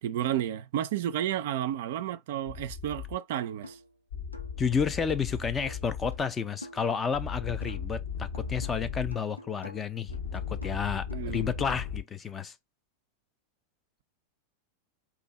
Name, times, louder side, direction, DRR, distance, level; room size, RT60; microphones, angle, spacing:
voice 1, 0.0-3.8 11.1-11.5, right 11 dB, 55° right, 0.3 m, -32 dB
sound 1, 2.5-3.2 4.1-6.2 7.1-9.2 10.1-12.0, left 6 dB, 70° left, 0.8 m, -36 dB
sound 2, 3.6-4.0 4.3-8.0 8.3-11.6, left 1 dB, 90° left, 0.4 m, -49 dB
voice 2, 4.6-12.5, left 6 dB, 20° left, 0.4 m, -31 dB
2.6 x 2.4 x 4.0 m
figure-of-eight pair, 90°, 0 cm